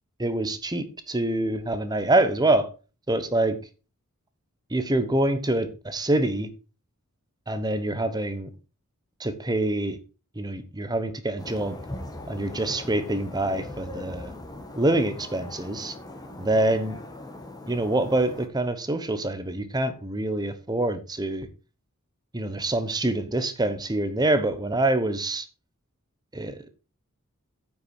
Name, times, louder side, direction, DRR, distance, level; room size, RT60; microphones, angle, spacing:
voice 1, 0.2-2.7 3.1-3.6 4.7-6.5 7.5-8.5 9.2-10.0 10.4-11.8 12.3-14.3 14.7-15.9 16.4-17.0 17.7-21.5 22.3-25.5 26.3-26.7, right 2 dB, 20° right, 1.0 m, -25 dB
sound 1, 11.4-18.5, left 2 dB, 20° left, 1.4 m, -40 dB
9.5 x 6.0 x 4.6 m
head